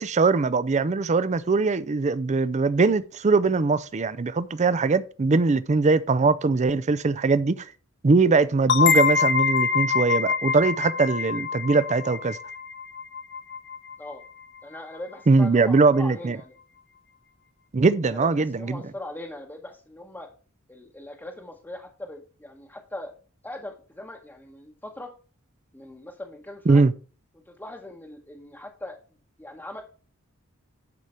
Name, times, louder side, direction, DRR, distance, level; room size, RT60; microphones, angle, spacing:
voice 1, 0.0-7.6 8.0-12.4 15.3-16.4 17.7-18.8 26.7-26.9, right 3 dB, 35° right, 0.5 m, -21 dB
sound 1, 8.7-14.1, left 6 dB, 55° left, 0.8 m, -25 dB
voice 2, 14.6-16.6 18.1-20.3 20.7-23.1 23.4-25.1 25.7-26.8 27.3-29.0 29.4-29.8, left 1 dB, 10° left, 1.0 m, -40 dB
10.5 x 4.9 x 4.3 m
head